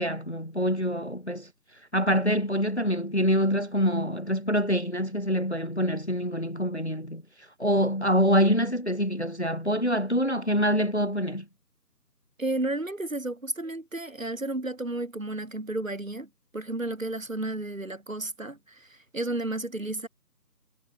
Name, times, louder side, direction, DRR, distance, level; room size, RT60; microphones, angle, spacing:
voice 1, 0.0-1.5 1.9-7.2 7.6-11.5, equal, 45° left, 0.9 m, -25 dB
voice 2, 12.4-18.9 19.1-20.1, right 2 dB, 50° right, 2.0 m, -32 dB
figure-of-eight pair, 170°, 49 cm